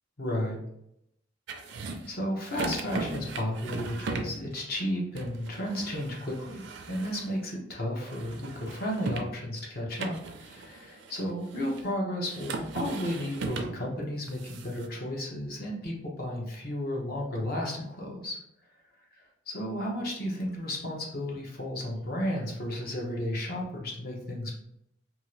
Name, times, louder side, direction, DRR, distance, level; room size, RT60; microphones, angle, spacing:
voice 1, 0.2-0.6 1.6-18.4 19.5-24.5, equal, 50° left, -2 dB, 0.9 m, -33 dB
sound 1, 1.5-2.2 2.4-4.4 5.2-7.5 8.0-9.4 9.9-11.8 12.3-13.9 14.3-14.9, right 3 dB, 65° right, 0.4 m, -38 dB
2.8 x 2.4 x 3.0 m, 0.78 s
head